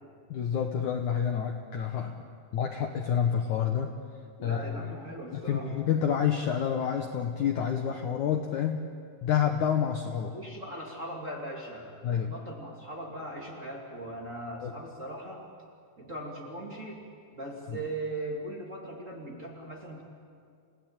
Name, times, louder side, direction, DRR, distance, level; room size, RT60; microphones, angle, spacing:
voice 1, 0.3-2.1 2.5-3.9 4.4-4.8 5.3-8.8 9.2-10.3 12.0-12.3 14.6-14.7 17.7-17.8, left 8 dB, 85° left, 4 dB, 1.7 m, -28 dB
voice 2, 4.4-5.8 10.3-15.5 16.0-17.0 17.3-20.0, right 1 dB, 25° right, -1 dB, 1.9 m, -39 dB
30.0 x 17.5 x 8.9 m, 2.2 s
omnidirectional pair, 5.1 m